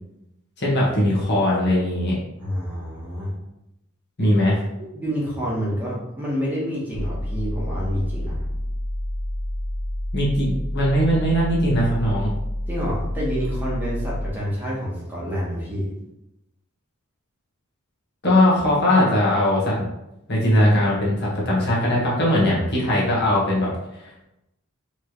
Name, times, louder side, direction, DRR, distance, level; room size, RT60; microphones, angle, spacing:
voice 1, 0.6-2.2 4.2-4.6 10.1-12.3 18.2-19.9 20.3-24.2, left 1 dB, 50° left, -5 dB, 1.4 m, -20 dB
voice 2, 2.4-3.3 4.2-4.3 4.9-8.5 12.7-15.9, equal, 10° right, -7 dB, 1.1 m, -28 dB
sound 1, 6.9-14.3, left 1 dB, 55° right, 0.7 m, -28 dB
4.4 x 3.1 x 3.1 m, 0.89 s
head